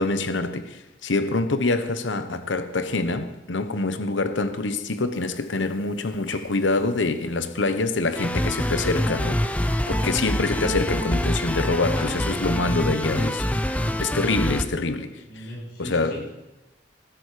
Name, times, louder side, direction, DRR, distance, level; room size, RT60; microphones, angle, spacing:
voice 1, 0.0-13.5 14.0-15.2 15.8-16.3, left 3 dB, 85° left, 1.0 m, -25 dB
Train / Sliding door, 4.3-13.5, left 1 dB, 25° left, 2.5 m, -47 dB
sound 1, 8.2-14.6, left 1 dB, 10° left, 0.7 m, -25 dB
voice 2, 14.8-16.2, equal, 60° left, 5.9 m, -39 dB
21.0 x 12.0 x 5.0 m
head